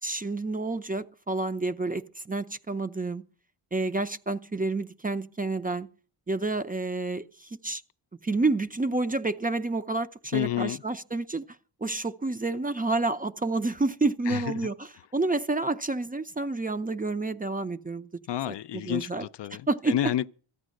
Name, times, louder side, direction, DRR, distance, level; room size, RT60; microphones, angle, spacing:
voice 1, 0.0-3.2 3.7-5.9 6.3-7.8 8.2-11.4 11.8-18.1 18.5-19.3 19.7-20.1, right 3 dB, 20° right, 0.5 m, -29 dB
voice 2, 10.3-10.8 14.3-14.6 18.3-20.3, left 12 dB, 60° left, 0.5 m, -30 dB
14.0 x 9.0 x 6.3 m
cardioid pair, 85°, 48 cm